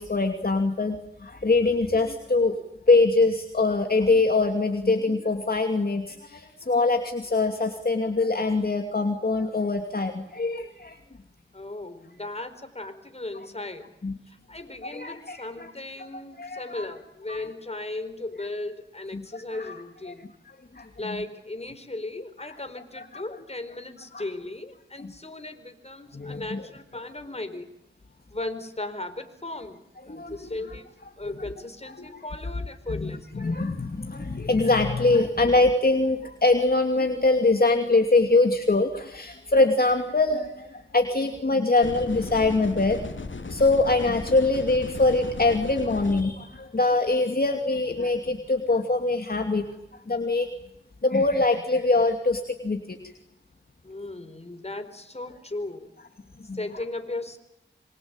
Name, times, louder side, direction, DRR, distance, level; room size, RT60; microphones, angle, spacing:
voice 1, 0.0-2.6 2.9-11.0 14.0-14.1 14.8-15.7 16.0-16.9 17.3-17.4 19.1-19.7 20.7-20.9 23.0-23.2 24.1-24.2 25.0-25.1 26.1-26.6 30.1-30.6 32.0-32.2 32.9-43.1 43.5-49.7 50.1-50.5 51.0-53.0 56.5-56.6, left 3 dB, 50° left, 4 dB, 2.7 m, -23 dB
voice 2, 11.5-13.9 14.3-20.3 21.0-27.7 28.3-30.9 31.2-33.5 53.8-55.9 56.5-57.4, left 2 dB, 35° left, 8 dB, 4.4 m, -36 dB
sound 1, 41.8-46.2, left 3 dB, 80° left, 2.9 m, -36 dB
26.5 x 24.0 x 9.0 m, 0.84 s
wide cardioid pair, 60°, 19 cm